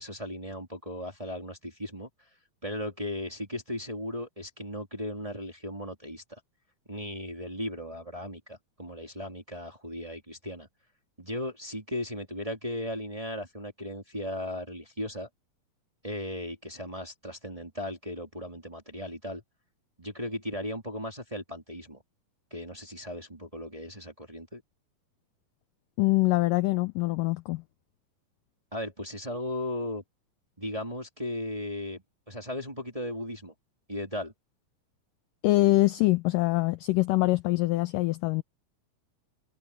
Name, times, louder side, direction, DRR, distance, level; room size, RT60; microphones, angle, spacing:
voice 1, 0.0-2.1 2.6-6.4 6.9-10.7 11.2-15.3 16.0-19.4 20.0-22.0 22.5-24.6 28.7-30.0 30.6-33.5 33.9-34.3, left 1 dB, 10° right, 2.4 m, -36 dB
voice 2, 26.0-27.6 35.4-38.4, left 19 dB, 80° left, 1.9 m, -24 dB
omnidirectional pair, 4.5 m